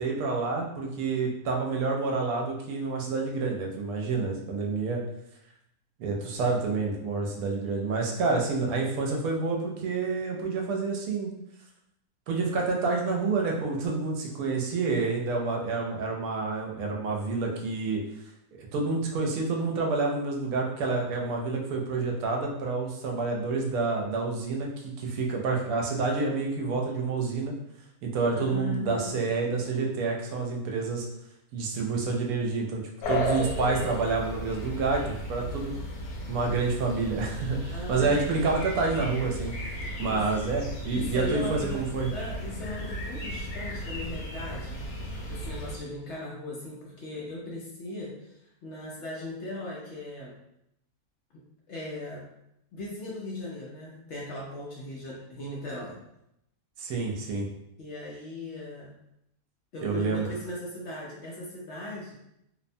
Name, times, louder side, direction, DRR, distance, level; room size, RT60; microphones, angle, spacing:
voice 1, 0.0-5.0 6.0-11.3 12.3-18.0 18.5-27.5 28.0-31.1 31.5-32.8 33.1-35.7 36.3-39.5 40.0-42.1 56.8-57.5 59.8-60.2, right 4 dB, 80° right, 0 dB, 1.0 m, -28 dB
voice 2, 28.3-29.3 37.7-38.2 40.0-40.2 40.9-41.8 42.1-44.8 45.3-50.3 51.7-52.3 52.7-56.0 57.8-58.9 59.7-62.1, left 1 dB, 65° left, -4 dB, 0.8 m, -38 dB
sound 1, 33.0-45.8, left 1 dB, 80° left, 1.1 m, -35 dB
2.8 x 2.1 x 2.5 m, 0.79 s
omnidirectional pair, 1.6 m